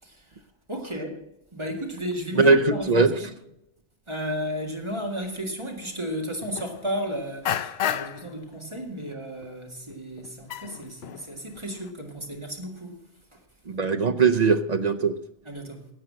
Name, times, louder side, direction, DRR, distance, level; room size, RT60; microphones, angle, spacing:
voice 1, 0.0-0.4 0.7-1.2 1.5-3.1 4.1-13.0 13.3-13.4 15.5-15.9, equal, 25° right, 2.0 m, -33 dB
voice 2, 2.3-3.2 13.7-15.2, right 4 dB, 45° right, 0.7 m, -20 dB
sound 1, 5.8-5.9 6.4-7.0 7.5-8.3 8.7-9.1 9.4-9.5 9.9-11.3 11.6-11.9, left 10 dB, 65° left, 0.8 m, -32 dB
13.0 x 7.7 x 7.5 m
omnidirectional pair, 1.2 m